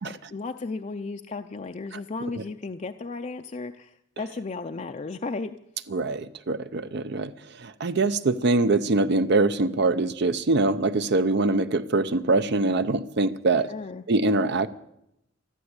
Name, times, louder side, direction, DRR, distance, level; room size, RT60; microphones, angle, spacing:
voice 1, 0.3-5.6 13.7-14.0, left 3 dB, 35° left, 6 dB, 0.5 m, -34 dB
voice 2, 5.9-7.3 7.6-13.7 14.1-14.7, right 3 dB, 60° right, 12 dB, 0.7 m, -23 dB
13.0 x 12.5 x 8.0 m, 0.81 s
head